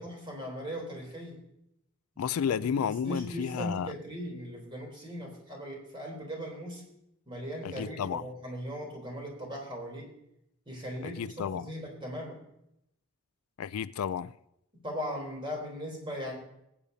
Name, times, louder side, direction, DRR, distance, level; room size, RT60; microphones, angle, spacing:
voice 1, 0.0-1.4 2.1-2.2 2.6-6.8 7.3-10.0 10.7-12.4 14.8-16.3, equal, 25° right, 3.3 m, -39 dB
voice 2, 2.2-3.9 7.6-8.2 11.0-11.7 13.6-14.3, left 7 dB, 85° left, 0.4 m, -32 dB
21.0 x 8.5 x 2.7 m
head